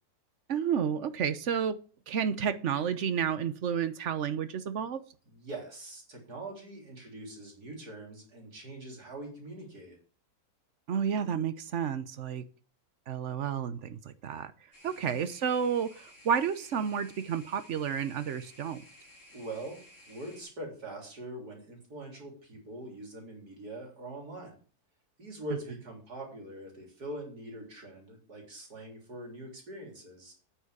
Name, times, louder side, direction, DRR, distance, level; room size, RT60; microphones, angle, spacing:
voice 1, 0.5-1.8 2.1-5.0 10.9-12.4 13.1-14.5 14.8-18.8, right 7 dB, 55° right, 12 dB, 1.1 m, -31 dB
voice 2, 5.3-10.0 14.9-15.3 19.3-24.6 25.2-30.3, right 1 dB, 90° right, 1 dB, 4.1 m, -43 dB
sound 1, 14.7-20.4, left 1 dB, 50° left, 4.3 m, -55 dB
9.3 x 6.2 x 8.2 m, 0.40 s
omnidirectional pair, 1.6 m